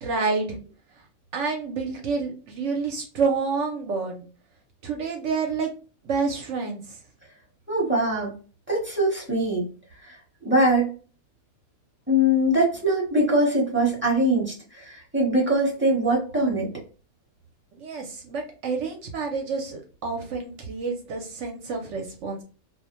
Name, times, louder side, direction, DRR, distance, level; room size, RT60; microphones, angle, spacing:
voice 1, 0.0-0.6 1.3-4.3 4.8-5.7 6.0-7.0 17.7-22.4, right 4 dB, 65° right, 3 dB, 0.8 m, -28 dB
voice 2, 7.7-8.3 8.7-9.6 10.0-10.2 10.4-10.9 12.1-16.7, right 1 dB, 10° right, -3 dB, 0.8 m, -22 dB
2.5 x 2.1 x 2.9 m, 0.37 s
omnidirectional pair, 1.5 m